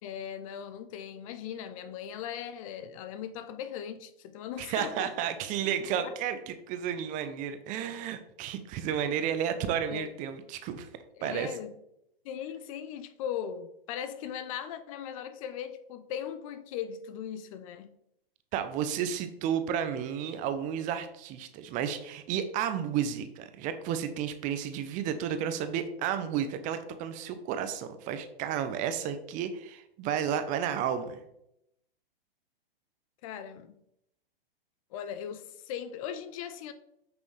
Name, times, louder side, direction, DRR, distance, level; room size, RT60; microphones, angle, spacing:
voice 1, 0.0-5.1 6.0-6.1 9.9-10.1 11.2-11.8 12.2-18.0 33.2-33.8 34.9-36.7, left 9 dB, 35° left, 0.7 m, -39 dB
voice 2, 4.6-10.9 11.2-11.5 18.5-31.2, right 8 dB, 25° right, 0.8 m, -32 dB
8.7 x 6.1 x 3.4 m
figure-of-eight pair, 115°, 29 cm